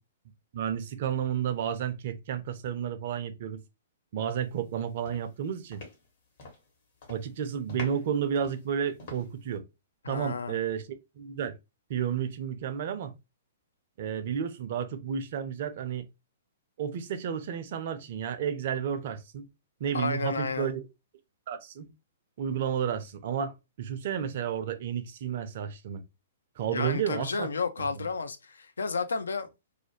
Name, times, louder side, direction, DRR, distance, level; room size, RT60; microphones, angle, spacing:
voice 1, 0.5-3.6 4.1-5.8 7.1-9.6 10.1-11.6 11.9-13.1 14.0-16.0 16.8-19.5 19.8-20.9 21.5-21.9 22.4-26.0 26.6-27.5 27.8-28.1, right 8 dB, 50° right, 0.4 m, -32 dB
sound 1, 4.5-4.7 5.0-6.7 7.0-7.3 7.7-9.5, left 2 dB, 50° left, 1.1 m, -45 dB
voice 2, 10.0-10.6 19.9-20.7 26.6-29.5, left 4 dB, 70° left, 0.3 m, -32 dB
2.4 x 2.2 x 2.8 m
figure-of-eight pair, 110°, 0 cm